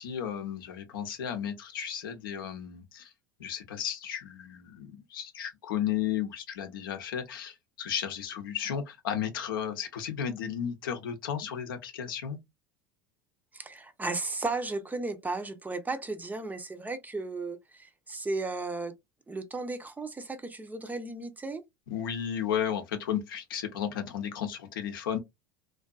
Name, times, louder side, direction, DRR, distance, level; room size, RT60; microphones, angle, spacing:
voice 1, 0.0-3.1 3.4-12.4 21.9-25.2, left 9 dB, 75° left, 0.6 m, -34 dB
voice 2, 13.5-18.9 19.3-21.6, right 3 dB, 15° right, 0.5 m, -35 dB
2.5 x 2.3 x 2.3 m
hypercardioid pair, 80°, 12 cm